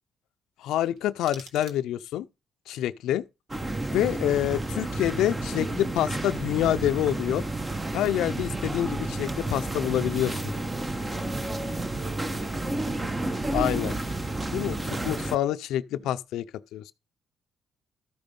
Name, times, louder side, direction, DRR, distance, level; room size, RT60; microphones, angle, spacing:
voice 1, 0.6-2.3 2.7-3.2 3.9-7.4 7.9-10.5 13.5-13.9 14.5-16.4 16.7-16.9, left 12 dB, 85° left, 0.5 m, -27 dB
sound 1, 0.8-2.3, right 4 dB, 75° right, 1.6 m, -49 dB
sound 2, 3.5-15.4, right 2 dB, 20° right, 1.0 m, -31 dB
voice 2, 3.6-4.0 11.4-11.8 12.3-12.7 13.1-13.6 15.9-16.1, right 3 dB, 50° right, 1.3 m, -46 dB
13.0 x 5.1 x 5.3 m
cardioid pair, 90°, 0 cm